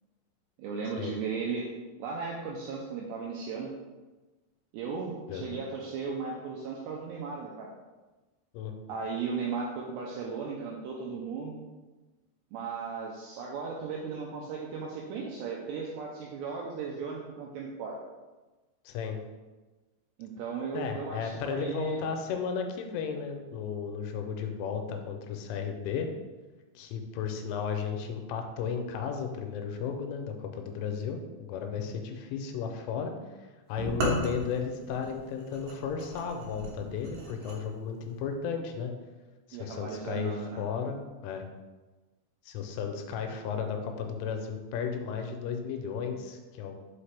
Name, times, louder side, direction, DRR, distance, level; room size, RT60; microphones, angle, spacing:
voice 1, 0.6-1.6 2.0-3.7 4.7-7.7 8.9-11.6 12.5-18.0 20.2-22.0 39.5-40.6, right 5 dB, 90° right, -2 dB, 2.4 m, -36 dB
voice 2, 18.9-19.2 20.7-26.1 26.8-33.1 33.7-38.9 39.5-41.5 42.5-46.8, left 6 dB, 85° left, 4 dB, 3.1 m, -34 dB
sound 1, 33.8-37.6, right 1 dB, 70° right, 2.1 m, -36 dB
5.7 x 5.7 x 3.3 m, 1.2 s
omnidirectional pair, 5.6 m